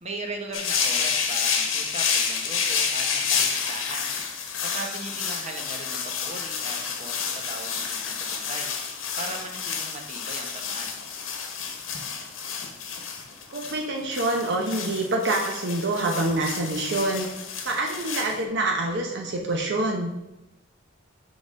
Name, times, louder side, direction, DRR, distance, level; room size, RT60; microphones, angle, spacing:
voice 1, 0.0-4.1 4.6-8.7 9.2-10.9, right 2 dB, 35° right, 2 dB, 1.0 m, -38 dB
sound 1, 0.5-18.4, left 6 dB, 80° left, 1.0 m, -29 dB
voice 2, 13.5-17.3 17.6-20.1, right 2 dB, 60° right, 0 dB, 0.8 m, -26 dB
6.0 x 3.9 x 5.1 m, 0.94 s
head